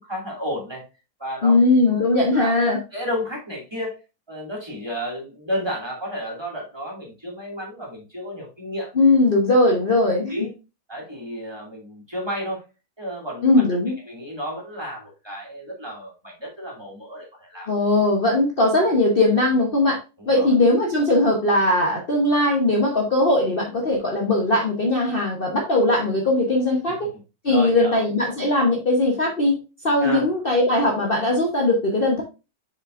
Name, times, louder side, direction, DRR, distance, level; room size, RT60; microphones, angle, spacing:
voice 1, 0.1-0.8 1.2-1.5 1.8-2.0 2.3-3.9 4.3-8.9 10.3-10.5 10.9-12.6 13.0-13.5 14.1-17.7 20.2-20.5 27.5-28.0 30.0-30.3, equal, 15° right, -3 dB, 2.4 m, -32 dB
voice 2, 1.4-2.8 8.9-10.5 13.4-13.9 17.7-20.0 20.3-27.0 27.4-29.6 29.8-32.2, left 2 dB, 40° left, -1 dB, 1.2 m, -19 dB
7.0 x 5.4 x 2.5 m, 0.28 s
omnidirectional pair, 1.7 m